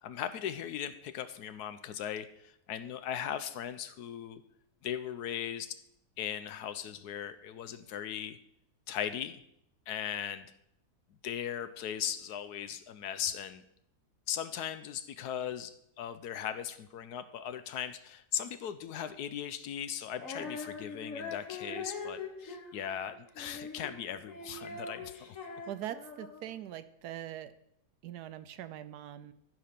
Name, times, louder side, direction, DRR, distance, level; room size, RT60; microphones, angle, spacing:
voice 1, 0.0-4.4 4.8-5.8 6.2-8.4 8.9-9.4 9.9-10.5 11.2-13.6 14.3-25.4, left 9 dB, 75° left, 11 dB, 1.2 m, -38 dB
Female singing, 20.1-26.6, left 4 dB, 55° left, 1.6 m, -43 dB
voice 2, 25.7-27.5 28.0-29.3, right 11 dB, 75° right, 12 dB, 1.1 m, -42 dB
14.0 x 5.0 x 5.8 m, 0.75 s
omnidirectional pair, 1.8 m